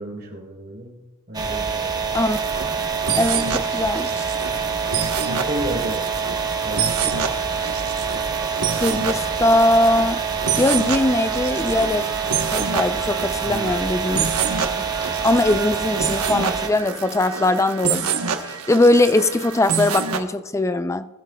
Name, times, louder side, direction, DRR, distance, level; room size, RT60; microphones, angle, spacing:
voice 1, 0.0-2.0 5.1-6.0 6.6-7.2 13.4-13.8, right 1 dB, 45° right, 3.8 m, -32 dB
sound 1, 1.3-16.7, right 6 dB, 20° right, 1.0 m, -26 dB
sound 2, 2.3-20.2, right 6 dB, 80° right, 1.1 m, -28 dB
sound 3, 2.5-10.2, left 1 dB, 70° left, 5.1 m, -47 dB
voice 2, 3.1-4.2 8.7-10.2 10.6-12.1 12.5-14.3 14.8-18.1 18.4-21.1, left 2 dB, 15° left, 0.4 m, -20 dB
20.5 x 12.0 x 2.3 m
head